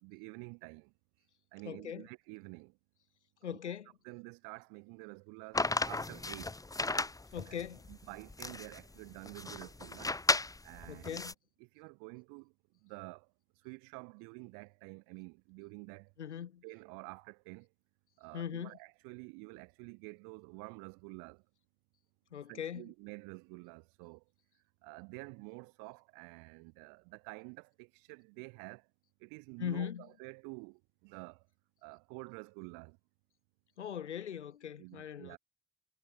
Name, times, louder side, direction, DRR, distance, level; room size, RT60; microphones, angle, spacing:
voice 1, 0.0-0.9 1.5-2.8 3.4-3.7 4.0-6.6 7.5-10.2 10.6-11.2 11.6-12.5 12.8-13.3 13.6-16.1 16.6-17.7 18.2-21.4 22.5-24.2 24.8-28.9 29.2-31.4 31.8-33.0 34.8-35.4, right 33 dB, 70° right, 5.8 m, -49 dB
voice 2, 1.6-2.1 3.4-3.9 7.3-7.8 10.9-11.3 16.2-16.6 18.3-18.8 22.3-22.9 29.6-30.0 33.8-35.4, left 9 dB, 85° left, 1.3 m, -40 dB
sound 1, 5.5-11.3, left 2 dB, 10° left, 0.8 m, -35 dB
figure-of-eight pair, 40°, 34 cm